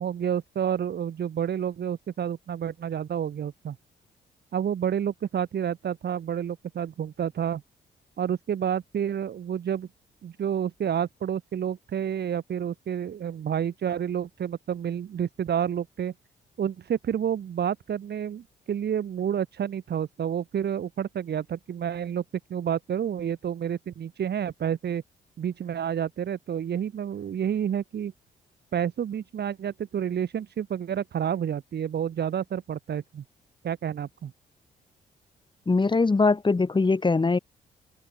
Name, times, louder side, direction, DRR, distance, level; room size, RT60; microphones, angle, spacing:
voice 1, 0.0-3.8 4.5-7.6 8.2-9.9 10.2-16.1 16.6-22.2 22.5-25.0 25.4-28.1 28.7-33.2 33.6-34.3, right 9 dB, 60° right, 4.2 m, -29 dB
voice 2, 35.7-37.4, left 3 dB, 25° left, 1.7 m, -22 dB
supercardioid pair, 55°, 19 cm